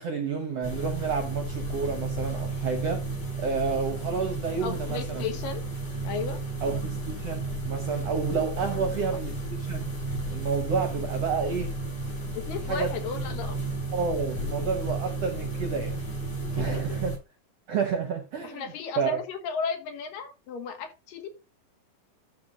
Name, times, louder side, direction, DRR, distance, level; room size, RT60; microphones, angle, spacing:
voice 1, 0.0-3.0 3.4-5.2 6.6-9.9 10.3-11.7 12.7-12.9 13.9-16.0 16.5-17.1 17.7-18.6 19.0-19.2, right 5 dB, 65° right, 1.6 m, -30 dB
sound 1, 0.6-17.2, right 2 dB, 50° left, 6.2 m, -33 dB
voice 2, 4.6-5.6 6.0-6.4 8.6-9.2 12.3-13.6 16.4-16.8 18.4-21.3, left 5 dB, 75° left, 3.0 m, -35 dB
12.5 x 4.3 x 3.8 m
omnidirectional pair, 4.1 m